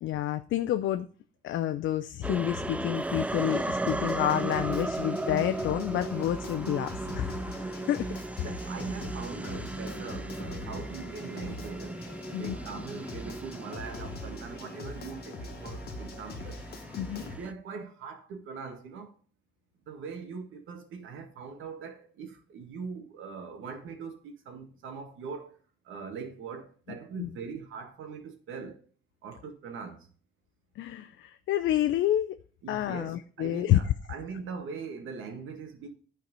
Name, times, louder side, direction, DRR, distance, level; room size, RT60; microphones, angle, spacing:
voice 1, 0.0-1.1 1.4-8.1 12.3-12.5 17.0-17.2 27.2-27.3 30.8-32.4 32.7-33.8, left 12 dB, 75° left, 0.6 m, -29 dB
sound 1, 2.2-17.5, right 2 dB, 5° right, 0.3 m, -36 dB
sound 2, 3.0-17.4, left 2 dB, 50° left, 1.6 m, -43 dB
voice 2, 8.4-16.6 17.1-19.1 19.9-25.6 25.8-28.8 29.2-30.1 32.6-35.9, right 5 dB, 80° right, 1.9 m, -41 dB
11.0 x 4.6 x 5.3 m
cardioid pair, 90°, 20 cm